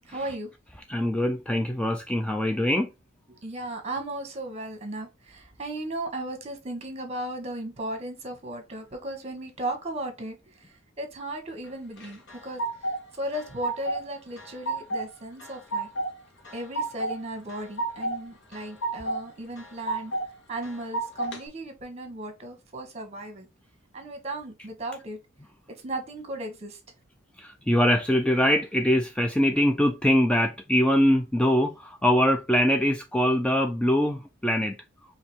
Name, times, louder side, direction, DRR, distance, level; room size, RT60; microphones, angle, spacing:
voice 1, 0.0-0.5 3.3-15.9 16.5-20.1 20.5-23.5 23.9-25.2 25.8-26.8, right 1 dB, 30° right, 1.2 m, -36 dB
voice 2, 0.9-2.9 27.4-34.8, equal, 5° left, 0.3 m, -23 dB
sound 1, 12.0-13.0 13.3-14.1 14.4-15.0 15.4-16.1 16.4-17.1 17.5-18.2 18.5-19.2 19.6-20.3 20.6-21.4, right 2 dB, 60° left, 1.3 m, -30 dB
4.9 x 2.8 x 3.0 m
head